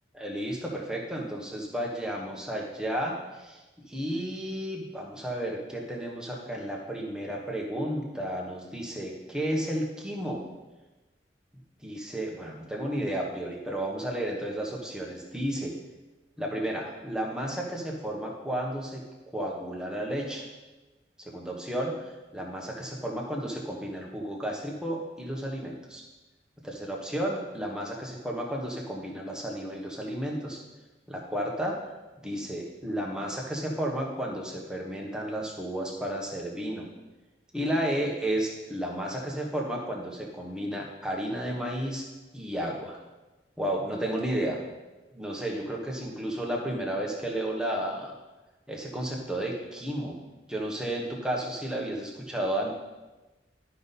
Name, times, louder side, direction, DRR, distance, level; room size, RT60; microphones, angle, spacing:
voice 1, 0.1-10.4 11.8-15.7 16.4-19.0 19.3-20.5 21.2-26.0 26.6-30.6 31.1-31.8 32.2-36.9 37.5-42.1 42.3-43.0 43.6-44.6 45.1-48.1 48.7-50.2 50.5-52.7, right 1 dB, 5° right, -2 dB, 1.2 m, -32 dB
12.0 x 5.3 x 4.1 m, 1.1 s
head